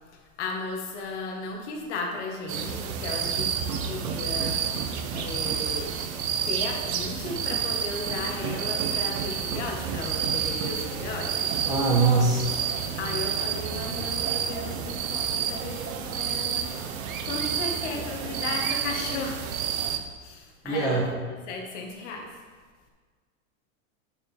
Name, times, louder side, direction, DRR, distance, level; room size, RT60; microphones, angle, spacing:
voice 1, 0.1-5.9 6.4-11.5 13.0-19.5 20.2-21.2 21.5-22.4, left 3 dB, 55° left, 1 dB, 1.5 m, -35 dB
sound 1, 2.5-20.0, right 7 dB, 90° right, 1.0 m, -29 dB
voice 2, 11.6-12.5 20.6-21.1, right 4 dB, 10° right, -5 dB, 1.5 m, -22 dB
9.1 x 7.2 x 3.3 m, 1.5 s
supercardioid pair, 175°, 40 cm